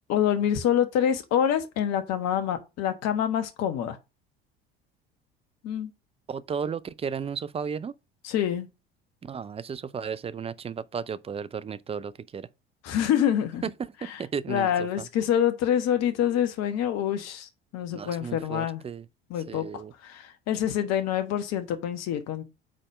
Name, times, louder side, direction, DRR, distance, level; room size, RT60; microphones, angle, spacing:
voice 1, 0.1-4.0 5.6-5.9 8.2-8.7 12.8-13.6 14.1-14.2 14.5-18.8 19.3-22.4, left 9 dB, 55° left, 1.2 m, -26 dB
voice 2, 6.3-7.9 9.2-12.5 13.6-13.7 14.0-15.1 17.9-19.1 19.5-19.9, right 6 dB, 20° right, 0.5 m, -34 dB
5.0 x 4.2 x 6.0 m
hypercardioid pair, 65°, 31 cm